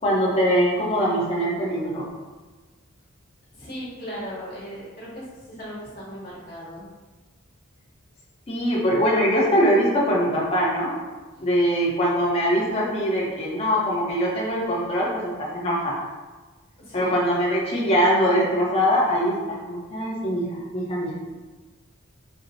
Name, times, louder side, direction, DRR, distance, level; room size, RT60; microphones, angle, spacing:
voice 1, 0.0-2.1 8.5-10.9 11.4-16.0 16.9-21.1, equal, 30° left, -5 dB, 0.8 m, -22 dB
voice 2, 3.5-6.9 16.8-17.1, equal, 45° left, -9 dB, 1.4 m, -37 dB
4.4 x 2.1 x 2.6 m, 1.3 s
head